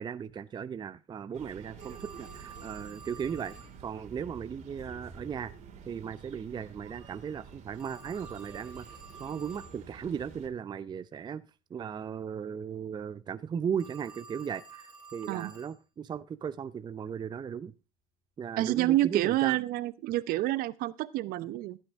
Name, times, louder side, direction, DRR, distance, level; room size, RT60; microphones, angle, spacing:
voice 1, 0.0-3.5 3.8-5.5 5.9-11.4 11.7-17.7 18.4-19.6, right 7 dB, 25° right, 0.6 m, -37 dB
sound 1, 1.3-10.5, right 5 dB, 40° right, 2.7 m, -49 dB
Telephone, 1.8-3.8 7.7-9.8 13.8-15.8, right 5 dB, 10° right, 5.6 m, -50 dB
voice 2, 18.6-21.8, right 15 dB, 55° right, 0.8 m, -28 dB
15.5 x 9.3 x 3.6 m
hypercardioid pair, 90°, 18 cm